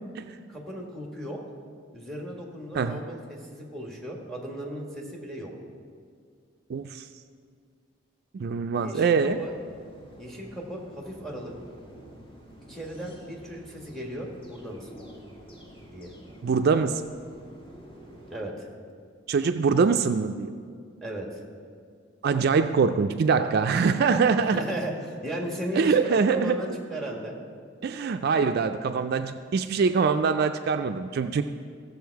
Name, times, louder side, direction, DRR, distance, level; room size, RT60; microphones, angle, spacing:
voice 1, 0.5-1.4 1.9-5.5 8.7-9.5 10.2-11.5 12.7-14.9 15.9-16.1 18.3-18.7 21.0-21.3 24.5-27.3, right 1 dB, ahead, 0 dB, 1.6 m, -36 dB
voice 2, 6.7-7.1 8.3-9.4 16.4-17.0 19.3-20.5 22.2-24.6 25.8-26.6 27.8-31.4, right 5 dB, 55° right, 8 dB, 0.3 m, -23 dB
sound 1, 8.9-18.4, equal, 25° left, 1.9 m, -49 dB
15.0 x 7.0 x 4.7 m, 2.1 s
head